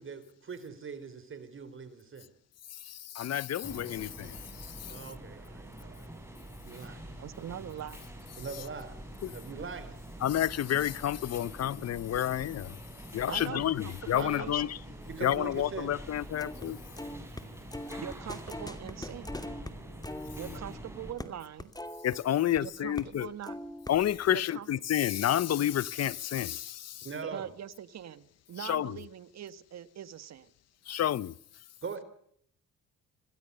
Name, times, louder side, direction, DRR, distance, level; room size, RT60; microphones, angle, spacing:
voice 1, 0.0-2.3 4.9-6.1 6.6-7.1 8.4-9.0 9.3-10.0 13.3-13.4 14.2-14.5 15.1-15.9 27.0-27.5 31.8-32.0, right 5 dB, 40° right, 3.8 m, -42 dB
voice 2, 2.9-4.4 4.8-4.9 9.2-9.3 10.2-12.8 13.1-14.7 15.2-16.8 22.0-23.3 23.9-27.1 28.6-29.0 30.9-31.3, left 11 dB, 55° left, 0.9 m, -30 dB
sound 1, 3.6-21.1, right 1 dB, 10° right, 6.8 m, -46 dB
voice 3, 7.1-8.0 13.3-14.8 18.0-19.4 20.4-21.7 22.6-23.6 24.3-24.7 27.2-30.5, right 10 dB, 60° right, 1.7 m, -42 dB
sound 2, 16.4-16.7 17.0-22.6 22.9-23.2 23.4-24.3, left 1 dB, 15° left, 2.6 m, -42 dB
27.0 x 19.0 x 6.8 m
cardioid pair, 90°, 30 cm